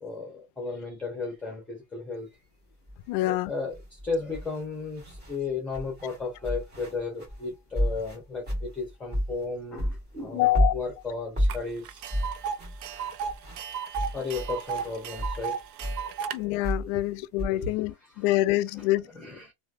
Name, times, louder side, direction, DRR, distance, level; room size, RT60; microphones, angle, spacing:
voice 1, 0.0-2.3 3.2-12.1 14.1-15.5 16.0-16.1 16.9-17.0 17.5-18.5 18.7-19.5, left 4 dB, 5° left, 0.9 m, -35 dB
sound 1, 2.9-3.1 3.7-5.4 5.7-9.5 9.8-15.4 15.8-17.5, equal, 20° right, 1.5 m, -31 dB
voice 2, 3.1-3.5 10.3-10.7 16.3-19.1, left 17 dB, 50° left, 0.4 m, -26 dB
Tick, 11.5-11.6 11.9-16.4, right 7 dB, 70° right, 0.7 m, -34 dB
3.1 x 2.6 x 2.5 m
supercardioid pair, 140°, 45 cm